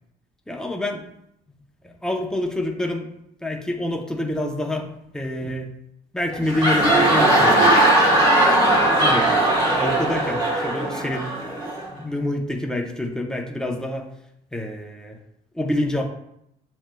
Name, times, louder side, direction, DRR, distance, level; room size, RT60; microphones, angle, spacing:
voice 1, 0.5-1.0 1.8-3.1 3.4-5.7 6.1-7.8 9.0-9.3 9.7-11.3 11.9-14.1 14.5-15.2 15.5-16.0, left 1 dB, 5° left, 1 dB, 0.7 m, -27 dB
sound 1, 6.3-11.9, right 1 dB, 25° right, 1.5 m, -18 dB
7.2 x 3.1 x 2.2 m, 0.76 s
cardioid pair, 110°, 17 cm